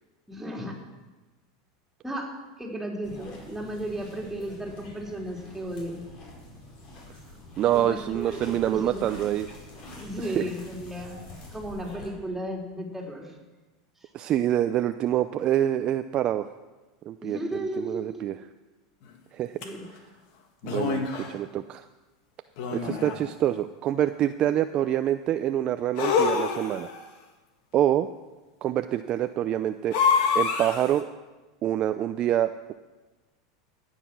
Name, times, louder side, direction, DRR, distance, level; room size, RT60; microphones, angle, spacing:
voice 1, 0.3-0.8 2.0-2.3 2.6-6.0 7.7-9.0 10.0-11.2 11.5-13.4 14.0-14.1 17.2-18.2 19.6-19.9 22.8-23.1, right 1 dB, 5° right, -2 dB, 3.6 m, -34 dB
sound 1, 3.0-12.1, left 1 dB, 45° left, 5.1 m, -45 dB
voice 2, 7.6-9.5 10.2-10.4 14.1-16.5 17.1-17.4 17.8-18.4 19.3-19.6 20.6-21.8 22.7-26.9 27.7-28.1 28.6-30.0 30.3-31.0 31.6-32.7, right 11 dB, 40° right, 9 dB, 0.5 m, -26 dB
sound 2, 19.6-19.7 20.6-21.4 22.6-23.3 26.0-27.0 29.9-31.0, left 6 dB, 60° left, 1.9 m, -26 dB
14.0 x 9.2 x 6.1 m, 1.2 s
hypercardioid pair, 105°, 2 cm